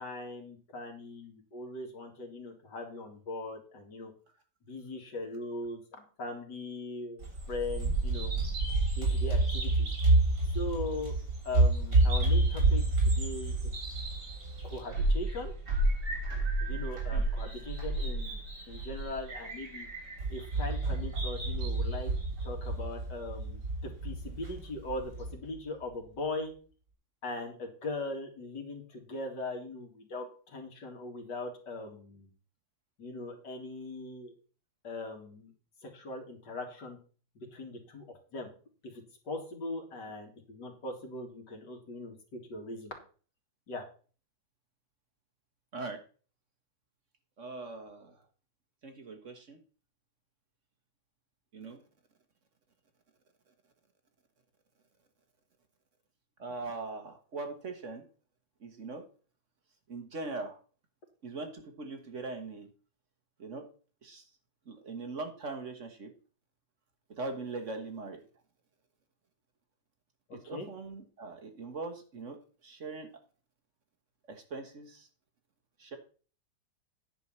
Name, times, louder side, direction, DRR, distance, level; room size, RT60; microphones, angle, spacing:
voice 1, 0.0-4.1 4.7-8.4 9.0-9.9 10.5-11.1 11.4-13.7 14.6-15.5 16.6-19.9 20.3-22.1 22.4-26.5 27.2-32.3 33.0-34.3 34.8-35.5 35.8-37.0 37.3-38.1 38.3-38.5 38.8-43.0 43.7-43.8 70.3-70.7, left 2 dB, 80° left, 3 dB, 2.8 m, -40 dB
Bird vocalization bird call bird song, 7.2-25.3, right 2 dB, 75° right, 3.9 m, -29 dB
voice 2, 47.4-48.2 48.8-49.6 51.5-51.8 56.4-58.0 58.6-59.0 59.9-60.6 61.2-62.7 63.4-63.7 64.0-64.2 64.7-66.1 67.1-68.2 70.3-73.1 74.3-75.1 75.8-76.0, right 3 dB, 45° right, 5 dB, 1.5 m, -41 dB
9.8 x 4.6 x 7.3 m, 0.40 s
omnidirectional pair, 1.8 m